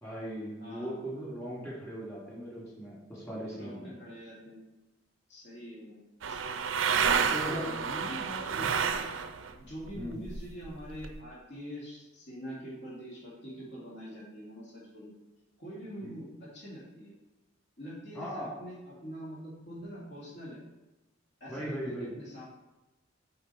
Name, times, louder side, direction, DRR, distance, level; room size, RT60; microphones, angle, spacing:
voice 1, 0.0-3.9 7.3-7.7 10.0-10.2 16.0-16.1 18.1-18.5 21.5-22.1, equal, 15° left, -5 dB, 2.5 m, -38 dB
voice 2, 0.6-1.0 3.5-4.6 5.3-6.4 7.1-9.0 9.6-15.1 15.6-17.1 17.8-20.6 21.4-22.4, equal, 60° left, -6 dB, 2.2 m, -44 dB
sound 1, 6.2-9.5 9.8-11.1, right 6 dB, 70° right, 0.5 m, -30 dB
7.9 x 4.8 x 4.0 m, 1.0 s
head